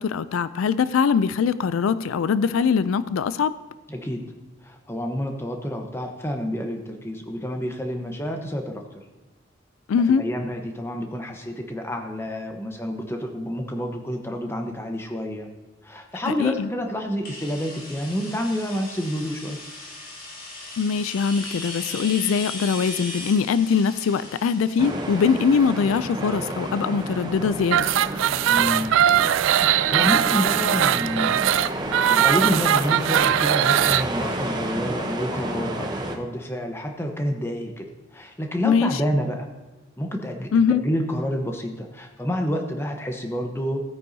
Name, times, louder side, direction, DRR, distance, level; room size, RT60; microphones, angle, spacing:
voice 1, 0.0-3.5 9.9-10.2 16.2-16.7 20.8-27.9 38.6-39.0 40.5-40.8, left 6 dB, 85° left, 16 dB, 0.4 m, -22 dB
voice 2, 3.9-4.2 4.6-9.0 10.1-15.5 15.8-19.6 28.5-29.0 29.6-31.4 31.9-39.5 40.0-43.8, equal, 10° left, 3 dB, 0.9 m, -29 dB
sound 1, 17.2-26.9, left 2 dB, 45° left, 2.4 m, -38 dB
sound 2, 24.8-36.2, right 1 dB, 20° right, 0.8 m, -31 dB
sound 3, 27.6-34.0, right 10 dB, 75° right, 0.3 m, -20 dB
16.0 x 9.2 x 2.7 m, 1.2 s
head